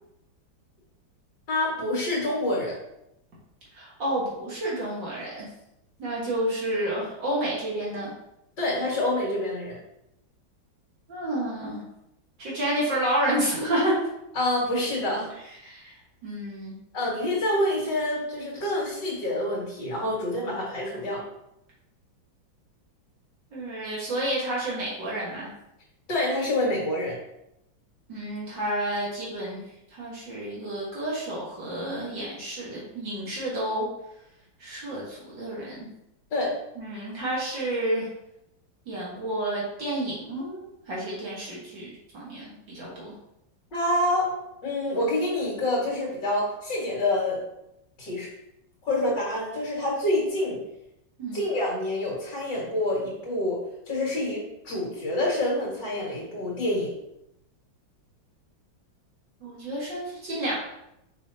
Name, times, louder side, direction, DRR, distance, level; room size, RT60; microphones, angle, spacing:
voice 1, 1.5-2.8 8.6-9.8 14.4-15.3 16.9-21.2 26.1-27.2 36.3-36.5 43.7-44.3 44.6-47.4 48.0-48.3 48.8-50.6 51.3-53.6 53.9-56.9, left 1 dB, 60° left, -6 dB, 2.4 m, -27 dB
voice 2, 3.7-5.5 6.0-8.1 11.1-11.8 12.4-14.1 15.6-16.8 23.5-25.5 28.1-29.6 29.9-33.9 34.6-35.9 36.8-38.1 38.9-43.1 51.2-51.4 59.4-60.6, right 1 dB, 65° right, -6 dB, 2.2 m, -30 dB
6.2 x 5.5 x 2.8 m, 0.85 s
omnidirectional pair, 2.2 m